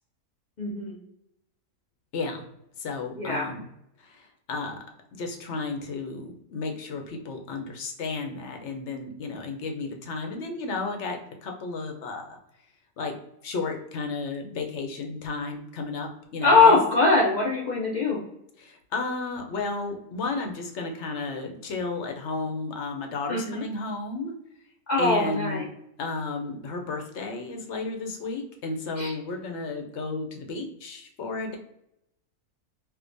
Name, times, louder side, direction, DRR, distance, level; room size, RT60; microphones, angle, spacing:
voice 1, 0.6-1.0 3.2-3.5 16.4-18.2 23.3-23.6 24.9-25.6 29.0-29.1, left 3 dB, 80° left, -3 dB, 0.4 m, -21 dB
voice 2, 2.8-3.6 4.0-4.8 5.2-12.4 13.0-13.2 13.4-16.8 18.6-24.3 25.0-25.7 26.0-31.6, left 3 dB, 60° left, 3 dB, 0.8 m, -33 dB
4.8 x 2.2 x 2.5 m, 0.78 s
omnidirectional pair, 1.6 m